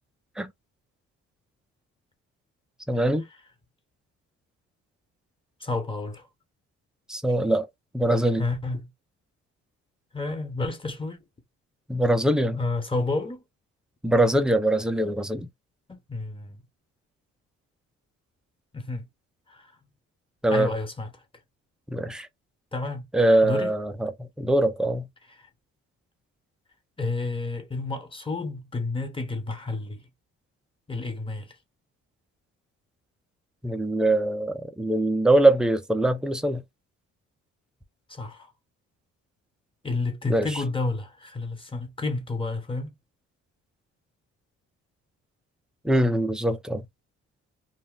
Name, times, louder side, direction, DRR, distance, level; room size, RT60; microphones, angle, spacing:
voice 1, 2.9-3.3 7.1-7.7 7.9-8.4 11.9-12.6 14.0-15.5 20.4-20.7 21.9-22.3 23.1-25.1 33.6-36.6 40.3-40.6 45.8-46.9, right 1 dB, ahead, 0.4 m, -23 dB
voice 2, 5.6-6.3 8.4-8.9 10.1-11.2 12.6-13.4 15.9-16.6 18.7-19.1 19.5-19.8 20.5-21.2 22.7-23.1 23.4-23.7 25.4-25.5 27.0-30.0 30.9-31.5 38.1-38.5 39.8-42.9, left 3 dB, 15° left, 1.0 m, -30 dB
2.3 x 2.1 x 3.7 m
cardioid pair, 90°, 30 cm